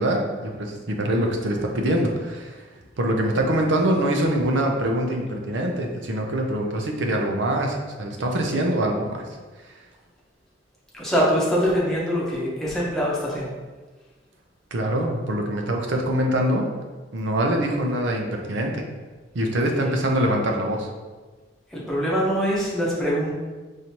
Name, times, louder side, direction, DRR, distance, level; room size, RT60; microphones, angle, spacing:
voice 1, 0.0-2.6 3.0-9.2 14.7-16.7 17.1-18.9 19.3-20.9, right 1 dB, 90° right, 2 dB, 0.6 m, -24 dB
voice 2, 10.9-13.5 21.7-23.3, equal, 5° left, -7 dB, 0.9 m, -23 dB
4.9 x 2.7 x 2.9 m, 1.3 s
head